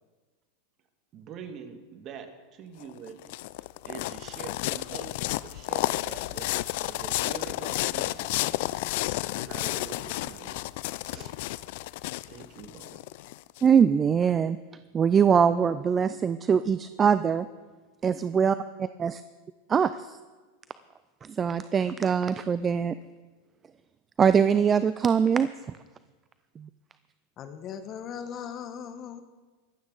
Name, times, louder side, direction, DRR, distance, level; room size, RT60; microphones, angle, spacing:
voice 1, 1.1-3.2 3.8-8.7 9.3-10.6 11.1-11.4 12.3-13.3, right 7 dB, 40° right, 6 dB, 1.8 m, -45 dB
sound 1, 2.8-13.6, left 18 dB, 65° left, 0.4 m, -31 dB
voice 2, 13.6-14.6 14.9-17.4 18.0-19.2 19.7-20.2 21.3-22.9 24.2-25.5 26.6-26.7, right 7 dB, 25° right, 13 dB, 0.4 m, -23 dB
voice 3, 27.4-29.2, left 8 dB, 40° left, 9 dB, 1.2 m, -38 dB
23.0 x 8.7 x 4.0 m, 1.3 s
hypercardioid pair, 115°, 0 cm